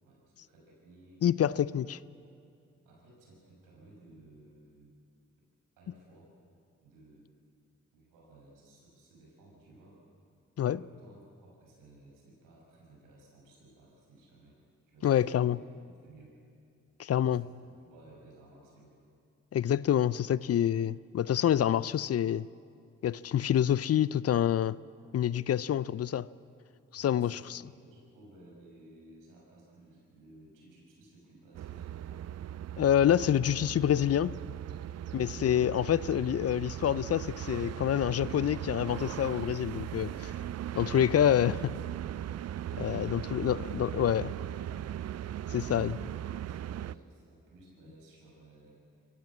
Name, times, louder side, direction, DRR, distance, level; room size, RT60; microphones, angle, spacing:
voice 1, 0.0-1.6 2.8-4.9 5.8-6.3 6.8-7.3 7.9-10.0 10.6-14.6 14.9-15.6 15.9-16.4 17.2-18.9 26.9-32.2 35.0-35.6 42.9-44.7 45.5-49.0, right 2 dB, 85° right, 6.9 m, -57 dB
voice 2, 1.2-2.0 10.6-10.8 15.0-15.6 17.0-17.4 19.5-22.5 23.0-24.8 25.1-26.3 26.9-27.6 32.8-34.4 35.1-40.3 40.7-41.7 42.8-44.2 45.5-45.9, left 10 dB, 50° left, 0.6 m, -27 dB
sound 1, 31.5-47.0, right 11 dB, 55° right, 0.5 m, -39 dB
25.0 x 15.0 x 7.4 m
hypercardioid pair, 45°, 32 cm